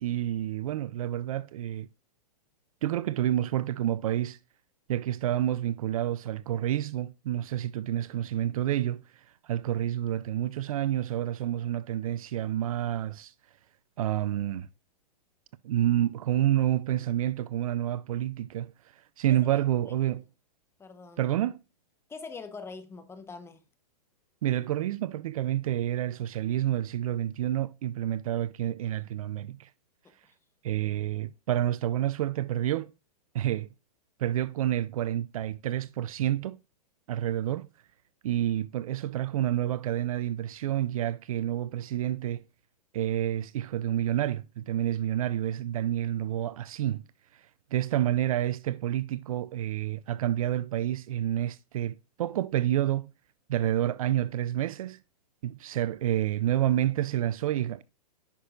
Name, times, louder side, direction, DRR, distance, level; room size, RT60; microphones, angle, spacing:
voice 1, 0.0-1.9 2.8-4.4 4.9-9.0 9.4-13.3 14.0-14.7 15.6-18.7 19.2-20.2 21.2-21.6 24.4-29.7 30.6-32.9 33.3-33.7 34.2-36.6 37.1-37.7 38.2-42.4 42.9-47.0 47.7-53.1 53.5-55.0 55.4-57.8, right 12 dB, 60° right, 0.4 m, -29 dB
voice 2, 19.3-19.9 20.8-21.3 22.1-23.6 30.0-30.1, left 4 dB, 10° left, 0.9 m, -44 dB
9.9 x 6.0 x 2.4 m
hypercardioid pair, 110°, 21 cm